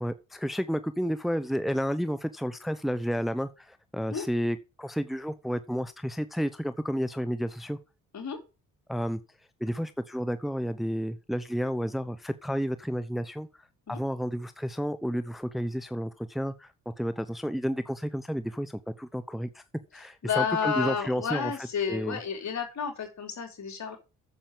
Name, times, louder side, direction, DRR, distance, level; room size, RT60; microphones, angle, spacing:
voice 1, 0.0-7.8 8.9-9.2 9.6-19.6 19.9-21.5 21.9-22.2, equal, ahead, 0.9 m, -31 dB
voice 2, 20.2-24.0, left 6 dB, 60° left, 4.2 m, -31 dB
9.2 x 7.4 x 6.9 m
supercardioid pair, 65°, 32 cm